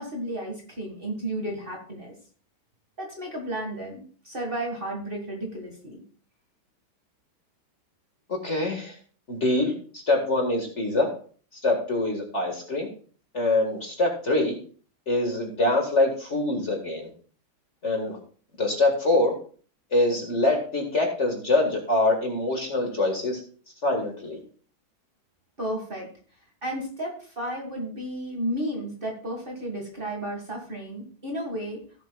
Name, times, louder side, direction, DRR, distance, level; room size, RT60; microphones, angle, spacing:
voice 1, 0.0-2.1 3.0-6.0 25.6-26.1 26.6-31.8, right 1 dB, 30° right, 1 dB, 1.9 m, -33 dB
voice 2, 8.3-8.9 9.3-9.7 10.1-11.1 11.6-12.9 13.3-14.6 15.1-17.1 17.8-18.2 18.6-19.3 19.9-23.4 23.8-24.4, left 2 dB, 35° left, 1 dB, 1.9 m, -24 dB
17.0 x 7.4 x 2.3 m, 0.42 s
omnidirectional pair, 2.2 m